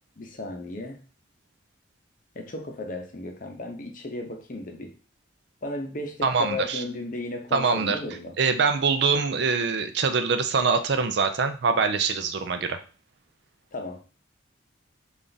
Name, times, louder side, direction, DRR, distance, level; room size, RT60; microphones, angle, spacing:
voice 1, 0.2-1.0 2.3-4.9 5.6-8.3 13.7-14.0, left 2 dB, 45° left, 3 dB, 0.7 m, -35 dB
voice 2, 6.2-6.8 7.5-8.0 8.4-12.8, right 5 dB, 60° right, 8 dB, 0.4 m, -24 dB
3.4 x 2.5 x 3.9 m, 0.36 s
head